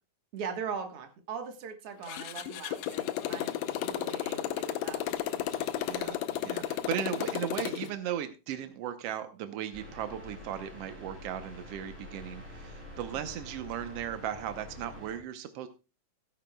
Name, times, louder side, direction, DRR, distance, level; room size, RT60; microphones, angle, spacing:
voice 1, 0.3-5.4 5.8-5.9 13.1-13.3, right 6 dB, 55° right, 6 dB, 1.9 m, -40 dB
Motorcycle, 2.0-7.9, left 11 dB, 80° left, 1.5 m, -33 dB
voice 2, 5.5-15.7, right 10 dB, 85° right, 9 dB, 1.3 m, -37 dB
sound 1, 9.7-15.2, left 1 dB, 5° right, 5.2 m, -46 dB
16.5 x 10.0 x 2.3 m, 0.30 s
omnidirectional pair, 3.9 m